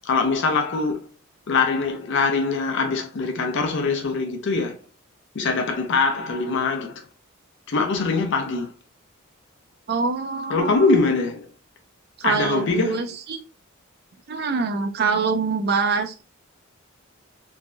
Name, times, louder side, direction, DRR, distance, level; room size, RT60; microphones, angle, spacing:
voice 1, 0.0-1.0 1.5-4.8 5.3-7.0 7.7-8.7 10.5-11.5 12.2-13.1, left 4 dB, 60° left, 0.5 m, -23 dB
voice 2, 9.9-10.9 12.2-13.4 14.3-16.2, right 4 dB, 50° right, 0.5 m, -24 dB
3.1 x 2.6 x 2.2 m
head